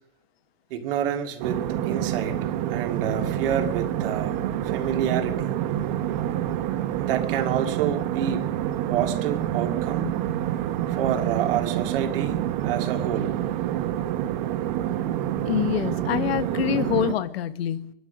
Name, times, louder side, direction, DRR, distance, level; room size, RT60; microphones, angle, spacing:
voice 1, 0.7-2.5 2.7-5.6 7.0-8.5 8.9-10.2 10.9-13.4, right 9 dB, 65° right, 4 dB, 2.3 m, -28 dB
sound 1, 1.4-17.1, right 12 dB, 50° right, 1.0 m, -27 dB
voice 2, 15.5-17.9, left 12 dB, 90° left, 11 dB, 1.2 m, -26 dB
24.0 x 11.5 x 5.2 m, 0.83 s
supercardioid pair, 170°, 30 cm